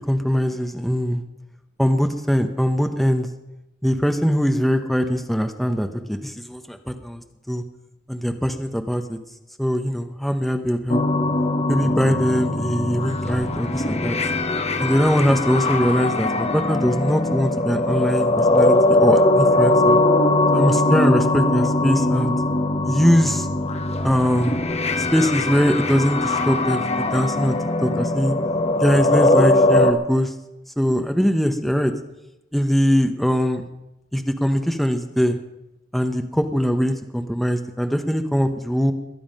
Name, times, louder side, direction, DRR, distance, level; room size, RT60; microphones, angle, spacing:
voice 1, 0.1-1.2 1.8-3.3 3.8-7.6 8.1-9.2 9.6-11.0 11.7-14.2 14.8-20.0 20.5-22.3 22.8-23.5 24.0-24.6 25.0-28.3 28.8-30.3 30.8-31.9 32.5-33.7 34.1-35.4 35.9-38.9, equal, ahead, 5 dB, 0.9 m, -21 dB
sound 1, 10.9-29.9, left 2 dB, 35° left, 1.2 m, -20 dB
22.0 x 9.5 x 5.4 m, 0.91 s
head